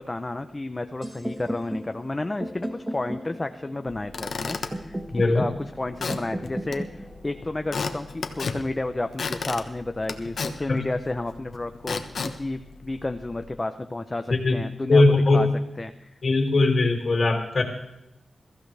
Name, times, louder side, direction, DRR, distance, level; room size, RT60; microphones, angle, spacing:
voice 1, 0.0-15.0 15.3-15.5 15.8-16.1, left 2 dB, 25° left, 7 dB, 0.7 m, -31 dB
sound 1, 1.0-8.9, right 1 dB, 15° right, 1.5 m, -37 dB
Squeak / Wood, 3.9-13.5, left 4 dB, 70° left, 1.2 m, -35 dB
voice 2, 5.1-5.4 10.7-10.8 14.3-14.5 14.9-15.4 16.2-17.6, left 2 dB, 50° left, 1 dB, 2.4 m, -20 dB
22.0 x 14.5 x 3.4 m, 0.90 s
wide cardioid pair, 95°, 0 cm